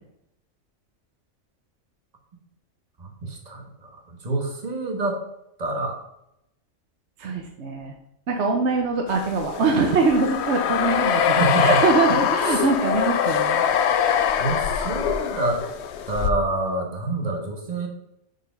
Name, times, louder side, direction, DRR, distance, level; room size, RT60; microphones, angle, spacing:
voice 1, 3.0-3.6 4.2-5.2 5.6-6.0 11.4-11.7 12.5-12.6 14.4-15.6 16.1-17.9, right 2 dB, 30° right, 1 dB, 1.4 m, -26 dB
voice 2, 7.2-7.9 8.3-13.6, right 3 dB, 60° right, 2 dB, 1.1 m, -23 dB
sound 1, 9.2-16.3, left 8 dB, 65° left, 0.8 m, -23 dB
6.3 x 4.8 x 5.1 m, 0.81 s
omnidirectional pair, 1.4 m